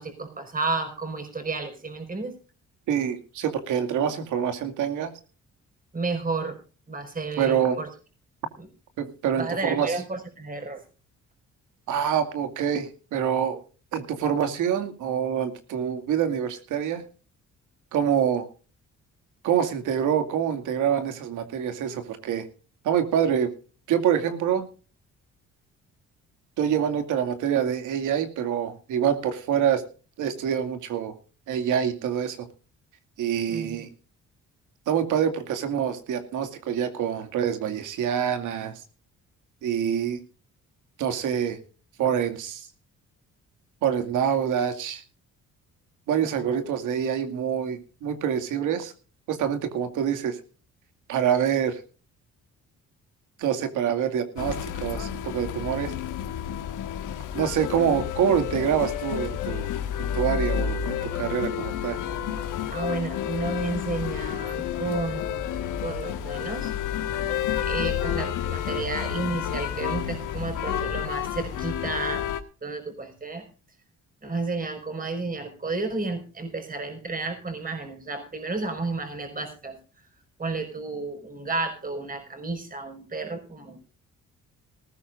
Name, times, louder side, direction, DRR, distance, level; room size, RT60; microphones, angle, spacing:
voice 1, 0.0-2.3 5.9-6.6 6.9-7.9 8.6-8.7 9.4-10.8 33.5-33.8 46.2-46.6 62.7-65.6 65.8-66.7 67.6-72.3 72.6-73.4 74.2-79.8 80.4-83.9, right 3 dB, 30° right, 6 dB, 5.2 m, -32 dB
voice 2, 2.9-5.1 7.4-7.8 9.0-9.9 11.9-13.6 13.9-17.0 17.9-18.5 19.4-22.5 22.8-23.5 23.9-24.7 26.6-29.8 30.2-31.1 31.5-32.5 33.2-33.9 34.9-38.8 39.6-40.2 41.0-41.6 42.0-42.7 43.8-45.0 46.1-48.9 49.3-50.4 51.1-51.8 53.4-55.9 57.3-59.7 60.0-62.0, right 8 dB, 90° right, 8 dB, 2.4 m, -26 dB
sound 1, 54.4-72.4, left 9 dB, 85° left, 1.8 m, -30 dB
19.0 x 14.5 x 2.6 m, 0.36 s
cardioid pair, 90°, 30 cm